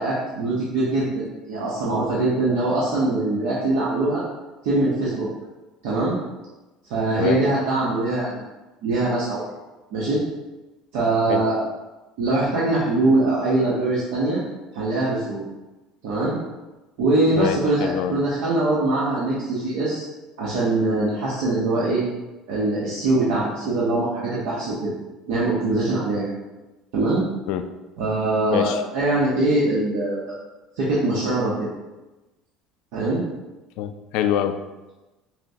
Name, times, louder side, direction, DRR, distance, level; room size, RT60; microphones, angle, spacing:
voice 1, 0.0-4.2 4.6-5.3 5.8-6.2 6.9-8.4 8.8-9.4 9.9-10.2 10.9-11.6 12.2-14.4 14.7-15.4 16.0-16.4 17.0-20.1 20.4-22.0 22.5-24.9 25.3-26.3 26.9-27.2 28.0-30.3 30.8-31.7 32.9-33.2, right 2 dB, 75° right, -7 dB, 0.9 m, -22 dB
voice 2, 17.4-18.1 19.4-19.5 27.5-27.7 28.5-28.8 33.8-34.6, left 10 dB, 70° left, 8 dB, 0.3 m, -25 dB
5.8 x 2.2 x 2.7 m, 1.1 s
supercardioid pair, 115°, 0 cm